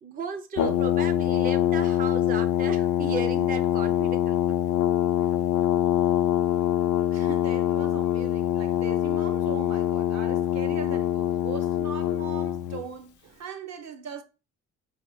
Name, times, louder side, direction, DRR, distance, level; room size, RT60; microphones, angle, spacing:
voice 1, 0.0-4.5, right 5 dB, 30° right, 0.4 m, -35 dB
Brass instrument, 0.6-12.8, left 11 dB, 85° left, 0.5 m, -24 dB
voice 2, 7.1-14.2, right 7 dB, 60° right, 0.8 m, -40 dB
4.5 x 2.8 x 3.1 m
cardioid pair, 90°, 30 cm